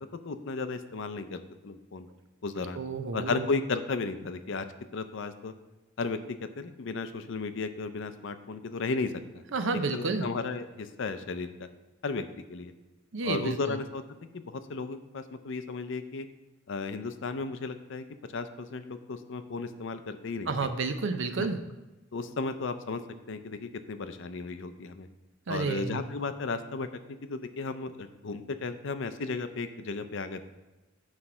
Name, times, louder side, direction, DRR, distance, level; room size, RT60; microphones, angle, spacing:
voice 1, 0.2-2.1 2.4-2.8 3.1-4.7 4.9-5.5 6.0-9.4 9.9-11.7 12.0-12.2 12.5-12.7 13.2-14.0 14.3-16.3 16.7-18.1 18.3-20.5 21.4-21.5 22.1-23.0 23.3-25.1 25.5-26.9 27.2-30.5, left 4 dB, 70° left, 10 dB, 0.6 m, -34 dB
voice 2, 2.8-3.5 9.5-10.3 13.1-13.8 20.5-21.6 25.5-26.0, right 3 dB, 70° right, 9 dB, 0.6 m, -30 dB
9.6 x 3.3 x 5.9 m, 1.1 s
head